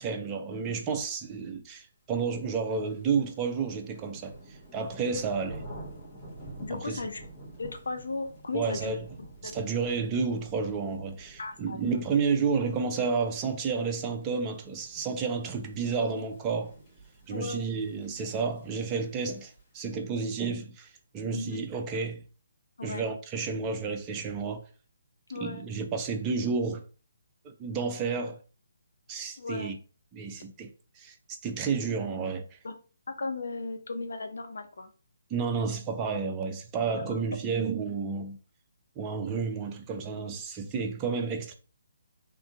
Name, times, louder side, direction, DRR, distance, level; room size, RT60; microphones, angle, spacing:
voice 1, 0.0-5.6 6.7-7.0 8.5-9.0 9.4-16.7 17.3-22.2 22.8-24.6 25.4-26.8 27.4-28.4 29.1-29.8 30.1-31.1 31.4-32.6 35.3-38.4 39.0-41.5, right 5 dB, 20° right, 0.5 m, -31 dB
sound 1, 2.3-19.8, right 1 dB, 25° left, 1.2 m, -49 dB
voice 2, 6.6-7.2 7.6-9.0 9.4-9.6 11.4-12.0 17.3-17.7 21.3-21.6 22.8-23.0 25.3-25.7 29.4-29.7 32.6-32.7 33.1-34.9 37.1-37.2, left 3 dB, 65° left, 0.6 m, -36 dB
3.6 x 2.6 x 2.4 m
figure-of-eight pair, 140°, 0 cm